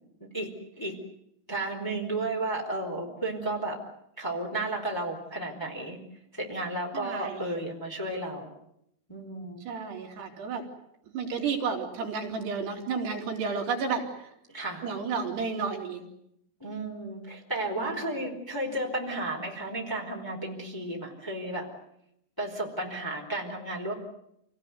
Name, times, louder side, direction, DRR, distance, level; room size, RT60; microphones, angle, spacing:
voice 1, 1.5-3.8 4.2-6.0 6.3-8.5 9.1-9.6 14.5-14.8 16.6-21.7 22.4-23.9, right 2 dB, 5° left, -1 dB, 4.0 m, -33 dB
voice 2, 6.9-7.5 9.7-10.6 11.1-14.3 14.8-16.1 17.8-18.3, right 5 dB, 85° right, 2 dB, 5.7 m, -32 dB
28.5 x 18.0 x 9.6 m, 0.77 s
omnidirectional pair, 4.7 m